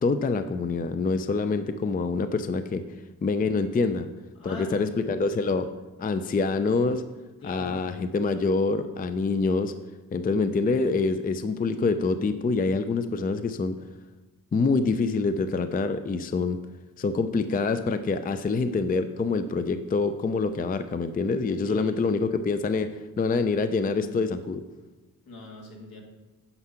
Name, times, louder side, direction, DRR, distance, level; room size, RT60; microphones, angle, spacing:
voice 1, 0.0-2.8 3.2-4.1 4.4-5.7 6.0-7.0 7.4-9.7 10.1-13.8 14.5-16.6 17.0-22.9 23.2-24.6, left 4 dB, 25° left, 10 dB, 0.4 m, -26 dB
voice 2, 4.4-5.0 7.4-7.8 21.7-22.0 25.3-26.0, left 2 dB, 75° left, 0 dB, 2.0 m, -40 dB
9.7 x 5.6 x 5.7 m, 1.2 s
wide cardioid pair, 120°, 36 cm